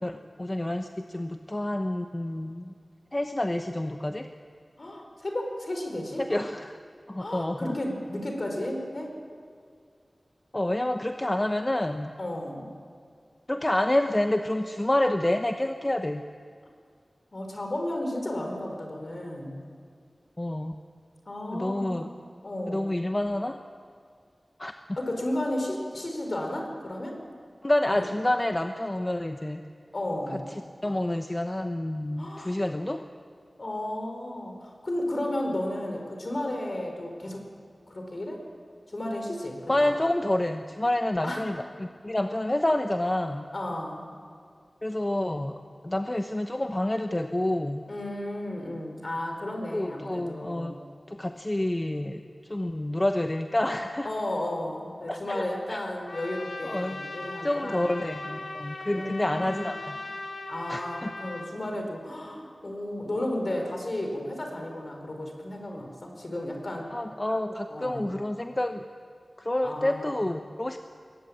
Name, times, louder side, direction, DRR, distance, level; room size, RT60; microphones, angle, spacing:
voice 1, 0.0-2.7 3.1-4.3 6.2-6.8 7.1-7.7 10.5-12.1 13.5-16.2 20.4-20.7 21.5-22.1 22.7-23.6 24.6-24.7 27.6-29.6 30.8-33.0 39.7-43.5 44.8-47.8 49.7-50.7 51.1-52.2 52.5-54.1 55.1-55.8 56.6-57.0 57.4-60.0 60.7-61.1 66.9-68.8 69.4-70.8, left 1 dB, 25° left, 6 dB, 0.9 m, -28 dB
voice 2, 4.8-6.2 7.2-9.1 12.2-12.7 17.3-19.6 21.3-22.1 22.4-22.9 25.0-27.2 27.9-28.1 29.9-30.5 32.2-32.6 33.6-37.5 37.9-38.4 38.9-39.9 41.2-41.5 43.5-44.0 47.9-50.7 54.0-57.9 58.9-59.8 60.5-66.9 67.7-68.1 69.6-70.3, left 1 dB, 50° left, 3 dB, 4.9 m, -33 dB
Trumpet, 56.1-61.5, left 2 dB, 85° left, 2.2 m, -39 dB
22.0 x 19.0 x 8.9 m, 2.1 s
wide cardioid pair, 65°, 0 cm